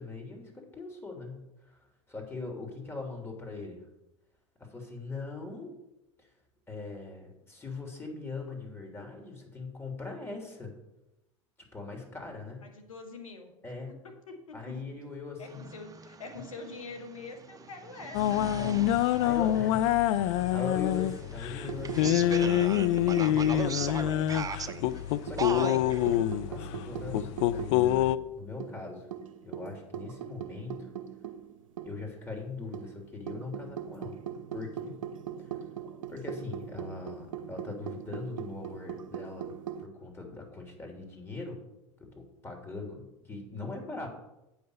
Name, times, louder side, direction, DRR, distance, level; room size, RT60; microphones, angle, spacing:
voice 1, 0.0-3.9 4.6-5.7 6.2-6.3 6.7-10.7 11.7-12.6 13.6-14.0 14.5-15.7 18.6-19.8 20.1-24.8 25.2-26.0 26.5-29.1 29.4-30.9 31.8-34.1 34.5-35.0 35.5-35.6 36.0-39.5 39.8-41.6 42.0-44.1, left 3 dB, 15° left, 1 dB, 3.1 m, -41 dB
voice 2, 12.6-14.9 15.4-18.5, left 3 dB, 85° left, 6 dB, 1.7 m, -45 dB
sound 1, 15.5-26.2, right 6 dB, 20° right, 0.7 m, -40 dB
sound 2, 18.1-28.2, left 13 dB, 60° left, 0.5 m, -26 dB
sound 3, 21.6-24.3 24.7-27.8 28.1-28.2 28.6-32.1 32.7-39.9, right 9 dB, 80° right, 0.7 m, -41 dB
8.7 x 5.7 x 6.6 m, 0.93 s
hypercardioid pair, 85°, 17 cm